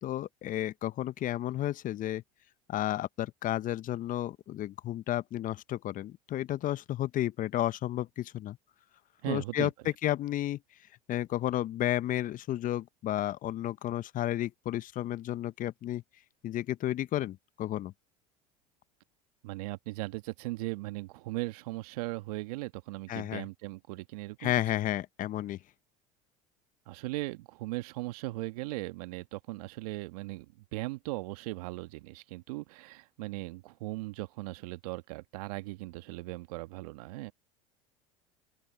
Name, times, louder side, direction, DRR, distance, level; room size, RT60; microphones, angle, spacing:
voice 1, 0.0-2.2 2.7-8.6 9.3-9.7 10.0-10.6 11.1-16.0 16.4-17.9 23.1-23.4 24.4-25.6, left 13 dB, 45° left, 0.9 m, -32 dB
voice 2, 9.2-9.7 19.4-24.6 26.9-37.3, right 21 dB, 70° right, 1.6 m, -38 dB
open air
hypercardioid pair, 80°, 20 cm